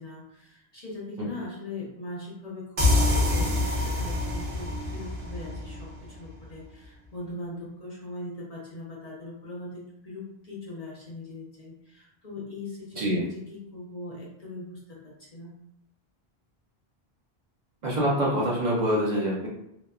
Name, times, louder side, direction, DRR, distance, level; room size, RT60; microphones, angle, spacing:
voice 1, 0.0-15.5, left 2 dB, 45° left, -5 dB, 0.6 m, -40 dB
sound 1, 2.8-6.3, left 2 dB, 75° right, 1.1 m, -26 dB
voice 2, 13.0-13.3 17.8-19.5, equal, 50° right, -4 dB, 0.6 m, -25 dB
2.9 x 2.1 x 2.3 m, 0.80 s
omnidirectional pair, 1.1 m